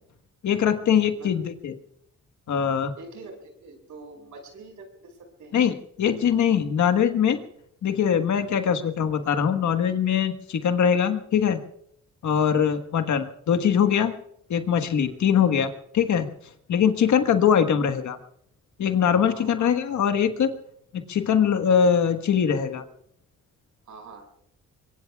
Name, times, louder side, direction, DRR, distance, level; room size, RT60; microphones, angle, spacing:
voice 1, 0.4-1.7 2.5-2.9 5.5-7.4 7.8-11.6 12.2-14.1 14.5-16.3 16.7-18.2 18.8-20.5 20.9-22.8, left 8 dB, 70° left, 7 dB, 1.5 m, -22 dB
voice 2, 3.0-5.6 8.5-8.8 12.3-12.8 15.0-15.3 19.3-19.6 23.9-24.3, right 3 dB, 75° right, 3 dB, 5.6 m, -45 dB
24.0 x 22.5 x 2.4 m, 0.72 s
cardioid pair, 75°, 30 cm